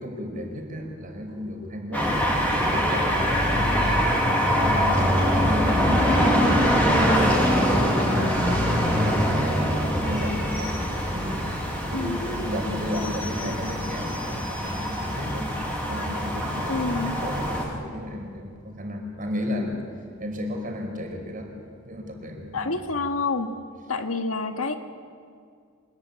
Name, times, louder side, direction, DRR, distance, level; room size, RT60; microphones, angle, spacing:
voice 1, 0.0-2.1 2.4-4.1 4.5-10.8 11.1-15.5 15.9-19.8 20.2-21.5 21.8-22.8, left 1 dB, 40° right, 3 dB, 5.1 m, -33 dB
sound 1, 1.9-17.6, equal, 5° left, 8.0 m, -23 dB
voice 2, 16.7-17.2 22.5-23.5 23.9-24.8, left 3 dB, 85° left, 6 dB, 1.8 m, -28 dB
26.5 x 20.0 x 9.6 m, 2.2 s
head